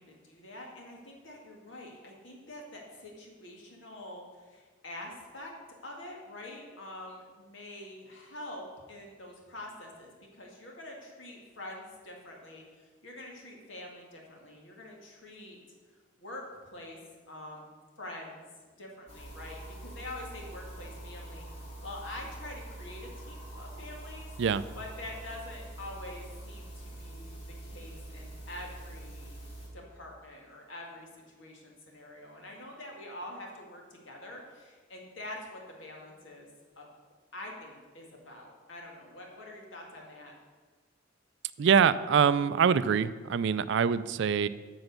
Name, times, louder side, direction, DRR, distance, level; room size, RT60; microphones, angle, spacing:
voice 1, 0.0-5.5 5.8-15.6 16.2-17.0 17.3-18.5 18.8-21.5 21.8-24.3 24.7-27.3 27.6-29.3 29.7-36.5 36.8-36.9 37.3-40.3, left 1 dB, 65° left, 0 dB, 2.2 m, -45 dB
sound 1, 19.1-29.7, right 1 dB, 35° left, 2.6 m, -45 dB
voice 2, 41.6-44.5, right 7 dB, 60° right, 16 dB, 0.4 m, -24 dB
7.9 x 7.1 x 6.7 m, 1.4 s
head